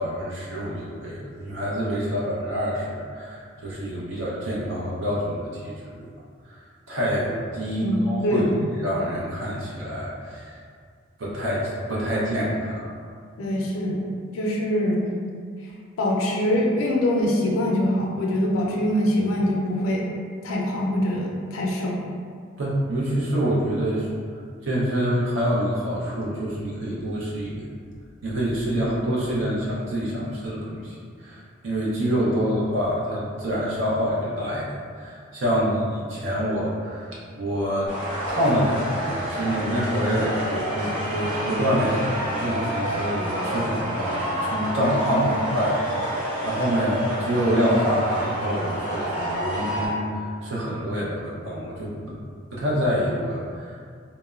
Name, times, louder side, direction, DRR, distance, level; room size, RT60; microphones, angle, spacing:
voice 1, 0.0-6.1 6.4-8.4 8.7-10.6 11.2-12.9 22.6-24.1 24.6-27.7 28.2-34.7 35.0-37.9 38.3-52.2 52.5-53.8, equal, 65° right, -6 dB, 0.5 m, -26 dB
voice 2, 7.8-8.7 13.4-14.1 14.3-15.1 16.0-20.0 20.4-22.0, left 1 dB, 80° left, -2 dB, 0.4 m, -23 dB
sound 1, 37.9-49.9, equal, 25° right, 1.1 m, -28 dB
2.9 x 2.0 x 2.2 m, 2.1 s
head